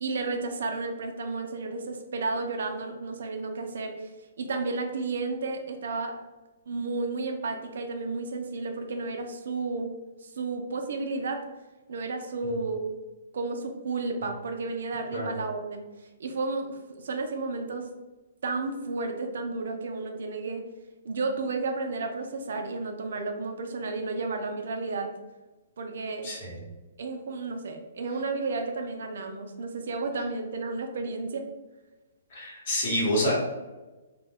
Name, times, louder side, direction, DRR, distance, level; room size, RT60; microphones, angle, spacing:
voice 1, 0.0-4.1 4.4-6.2 6.7-9.9 10.2-11.4 11.9-12.9 13.3-15.8 16.2-17.9 18.4-20.6 21.0-25.1 25.8-26.4 27.0-31.5, right 3 dB, 70° right, 5 dB, 0.4 m, -32 dB
voice 2, 26.2-26.6 32.3-33.3, equal, 45° left, -4 dB, 1.0 m, -27 dB
2.2 x 2.1 x 3.4 m, 1.1 s
hypercardioid pair, 160°, 0 cm